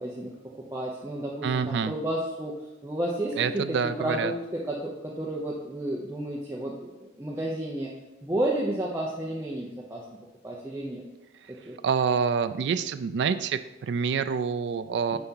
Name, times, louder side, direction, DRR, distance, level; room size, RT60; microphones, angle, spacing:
voice 1, 0.0-2.5 2.8-7.9 8.2-10.0 10.4-11.0 11.5-11.8 15.1-15.2, right 1 dB, 15° right, -4 dB, 0.6 m, -32 dB
voice 2, 1.4-1.9 3.4-4.3 11.8-15.2, right 6 dB, 65° right, 11 dB, 0.3 m, -27 dB
5.5 x 3.5 x 5.5 m, 1.0 s
head